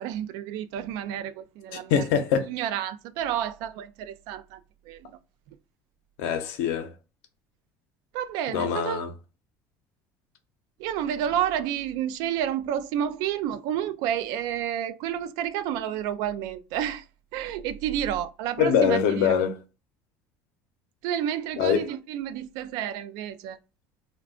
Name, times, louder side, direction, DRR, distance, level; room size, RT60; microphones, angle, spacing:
voice 1, 0.0-2.1 2.4-5.1 8.1-9.0 10.8-17.1 17.3-19.4 21.0-23.6, right 10 dB, 75° right, 0.3 m, -30 dB
voice 2, 1.9-2.5 6.2-6.9 8.5-9.1 18.6-19.6 21.6-21.8, left 7 dB, 85° left, 0.7 m, -23 dB
2.4 x 2.3 x 3.5 m
supercardioid pair, 110°, 7 cm